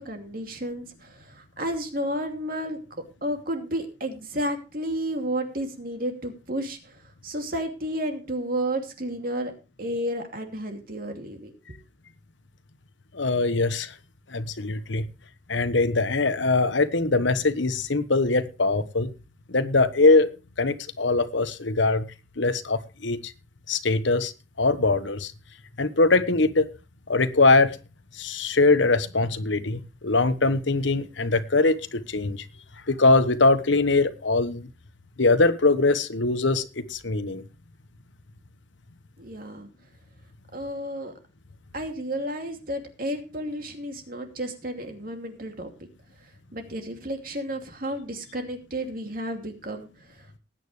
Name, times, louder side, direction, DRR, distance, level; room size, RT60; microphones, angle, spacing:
voice 1, 0.0-2.8 3.2-7.0 7.2-9.5 9.8-11.5 39.2-39.7 40.5-41.1 41.7-45.7 46.5-50.4, right 1 dB, 45° right, 5 dB, 2.7 m, -32 dB
voice 2, 13.1-13.9 14.3-15.1 15.5-19.1 19.5-20.3 20.6-22.1 22.4-23.3 23.7-24.3 24.6-25.3 25.8-26.7 27.1-27.8 28.1-32.5 32.9-34.7 35.2-37.4, left 3 dB, 75° left, 12 dB, 1.2 m, -22 dB
19.5 x 9.2 x 3.3 m, 0.31 s
head